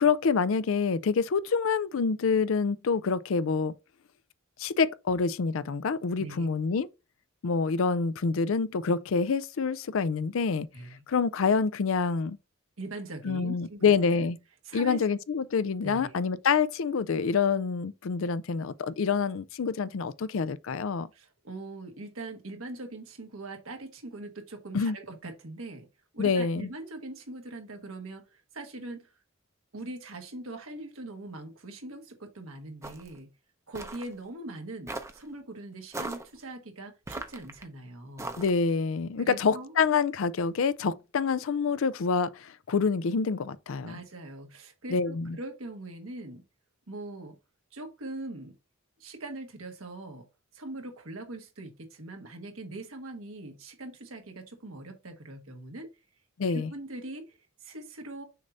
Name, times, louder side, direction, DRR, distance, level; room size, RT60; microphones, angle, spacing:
voice 1, 0.0-3.7 4.6-6.9 7.4-10.7 11.1-12.4 13.2-14.4 14.7-21.1 24.7-25.0 26.2-26.7 38.4-44.0 44.9-45.4 56.4-56.7, left 5 dB, 75° left, 0.4 m, -27 dB
voice 2, 10.7-11.0 12.8-13.9 14.2-14.3 14.6-15.0 15.8-16.2 21.1-25.9 26.1-29.1 29.7-33.3 33.7-38.3 39.2-39.7 43.8-46.4 46.9-47.4 47.7-48.5 49.0-50.2 50.5-55.9 56.5-58.2, right 2 dB, 80° right, 1.4 m, -41 dB
sound 1, 32.8-33.2 33.7-34.1 34.9-35.2 35.9-36.3 37.1-37.6 38.2-38.7, right 2 dB, 15° right, 0.6 m, -38 dB
6.5 x 2.6 x 5.5 m
head